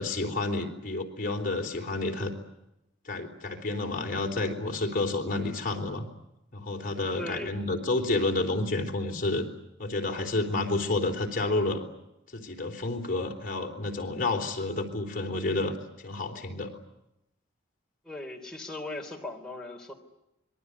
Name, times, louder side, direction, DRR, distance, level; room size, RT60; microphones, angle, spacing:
voice 1, 0.0-2.3 3.1-6.1 6.5-9.5 9.8-11.9 12.3-16.7, left 2 dB, 45° left, 3 dB, 3.7 m, -30 dB
voice 2, 7.2-7.6 18.0-19.9, left 2 dB, 5° left, 0 dB, 3.6 m, -38 dB
26.0 x 21.5 x 9.6 m, 0.88 s
head